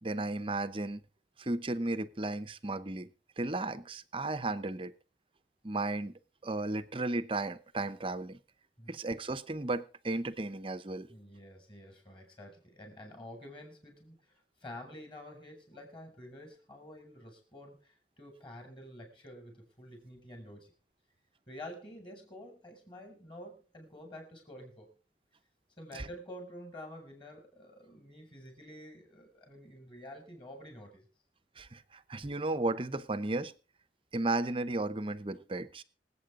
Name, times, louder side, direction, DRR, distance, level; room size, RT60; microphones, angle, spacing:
voice 1, 0.0-1.0 1.4-3.1 3.4-4.9 5.6-8.4 8.9-11.1 25.9-26.1 31.6-33.5 34.1-35.8, right 2 dB, 30° right, 0.8 m, -34 dB
voice 2, 11.1-20.7 21.5-25.0 25.8-31.1, left 1 dB, 25° left, 5.6 m, -49 dB
25.5 x 8.6 x 3.7 m
head